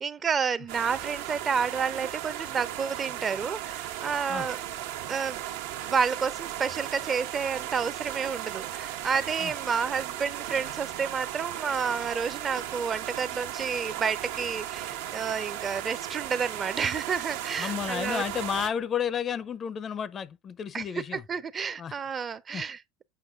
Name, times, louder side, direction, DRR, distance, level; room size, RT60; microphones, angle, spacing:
voice 1, 0.0-4.6 5.1-5.4 5.9-18.2 20.7-20.8 21.1-22.8, right 6 dB, 25° right, 0.5 m, -30 dB
sound 1, 0.7-18.7, right 12 dB, 85° right, 1.2 m, -36 dB
voice 2, 17.6-21.2 21.8-22.0 22.5-22.6, left 8 dB, 25° left, 0.5 m, -32 dB
7.7 x 5.3 x 2.3 m
supercardioid pair, 145°, 0 cm